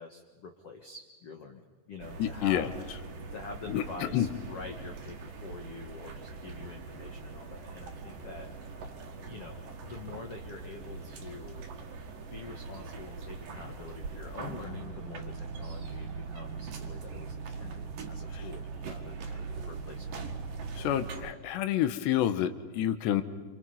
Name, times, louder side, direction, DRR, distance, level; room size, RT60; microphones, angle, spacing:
voice 1, 0.0-1.6 1.9-2.8 3.3-8.5 9.2-11.7 12.3-20.2, left 4 dB, 60° left, 3 dB, 1.6 m, -46 dB
sound 1, 2.0-21.3, right 4 dB, 60° right, 3.3 m, -41 dB
voice 2, 2.2-2.7 3.7-3.8 4.1-4.3 18.3-18.4 20.8-23.2, left 11 dB, 85° left, 11 dB, 3.3 m, -28 dB
28.0 x 27.5 x 5.7 m, 1.4 s
omnidirectional pair, 4.9 m